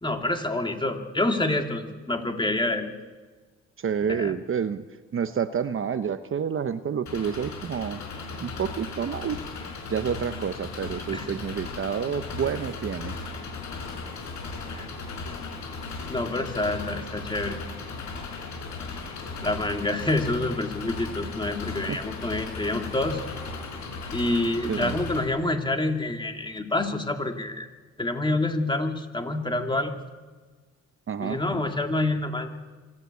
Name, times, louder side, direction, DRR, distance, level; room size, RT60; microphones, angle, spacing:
voice 1, 0.0-2.9 4.1-4.3 11.1-11.3 14.7-14.9 16.1-17.6 19.4-23.2 24.1-27.7 28.0-29.9 31.2-32.5, left 2 dB, 15° left, 4 dB, 2.7 m, -27 dB
voice 2, 3.8-4.8 5.1-8.0 8.4-9.4 9.9-13.2 21.9-22.0 24.7-24.9 31.1-31.4, right 7 dB, 45° right, 11 dB, 0.9 m, -29 dB
Engine, 7.1-25.2, left 4 dB, 70° left, 5.4 m, -36 dB
25.5 x 12.5 x 8.5 m, 1.4 s
cardioid pair, 90°, 30 cm